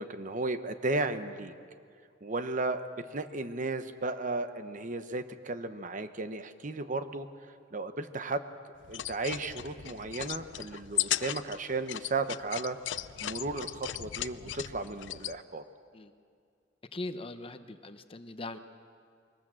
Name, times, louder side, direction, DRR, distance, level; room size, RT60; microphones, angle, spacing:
voice 1, 0.0-1.5 2.2-7.3 7.7-8.4 8.9-12.8 13.2-15.6, right 3 dB, 40° right, 10 dB, 0.9 m, -34 dB
sound 1, 8.8-15.4, left 13 dB, 65° left, 0.5 m, -36 dB
voice 2, 16.9-18.6, left 2 dB, 30° left, 9 dB, 0.8 m, -40 dB
22.5 x 19.0 x 7.5 m, 2.2 s
head